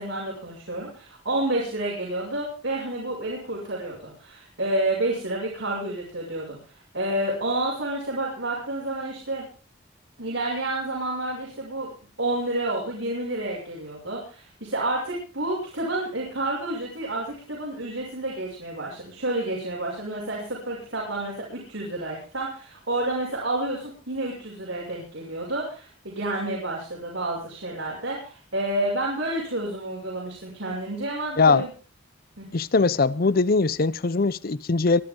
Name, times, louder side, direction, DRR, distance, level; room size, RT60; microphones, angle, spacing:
voice 1, 0.0-6.6 6.9-9.5 10.2-31.7 32.4-32.5, right 1 dB, 80° right, 6.3 m, -29 dB
voice 2, 31.4-31.7 32.5-35.0, left 4 dB, 50° left, 0.6 m, -21 dB
23.5 x 11.5 x 3.8 m
head